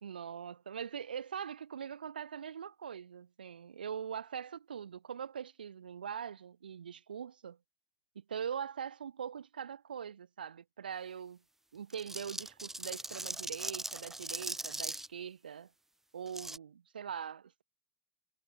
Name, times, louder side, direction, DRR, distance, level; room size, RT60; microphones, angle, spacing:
voice 1, 0.0-7.6 8.2-11.4 11.7-15.7 16.1-17.6, right 8 dB, 80° right, 0.6 m, -42 dB
sound 1, 11.9-15.1 16.3-16.6, right 2 dB, 5° right, 0.7 m, -40 dB
figure-of-eight pair, 70°, 5 cm